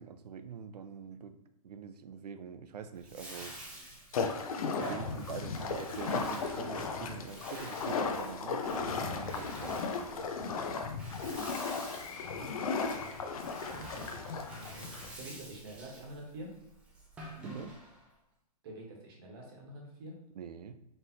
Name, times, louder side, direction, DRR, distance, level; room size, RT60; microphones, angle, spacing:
voice 1, 0.0-3.5 4.8-10.3 17.4-17.7 20.3-20.8, right 7 dB, 80° right, 10 dB, 0.5 m, -45 dB
Bathtub (filling or washing), 2.9-18.1, right 1 dB, 5° right, 0.4 m, -48 dB
sound 1, 4.1-15.1, left 5 dB, 65° left, 0.6 m, -36 dB
voice 2, 4.8-5.1 11.7-12.6 13.6-16.5 18.6-20.1, right 1 dB, 35° right, -1 dB, 1.1 m, -48 dB
4.3 x 3.3 x 2.8 m, 0.86 s
hypercardioid pair, 155°, 20 cm